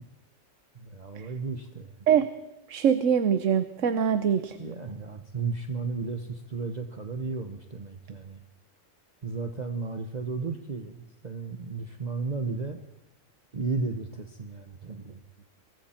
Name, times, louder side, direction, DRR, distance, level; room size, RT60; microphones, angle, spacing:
voice 1, 0.7-2.1 4.6-8.4 9.2-12.8 13.5-15.2, right 4 dB, 35° right, 5 dB, 1.1 m, -34 dB
voice 2, 2.7-4.6, right 8 dB, 80° right, 11 dB, 1.2 m, -23 dB
26.5 x 22.0 x 4.4 m, 0.97 s
omnidirectional pair, 1.3 m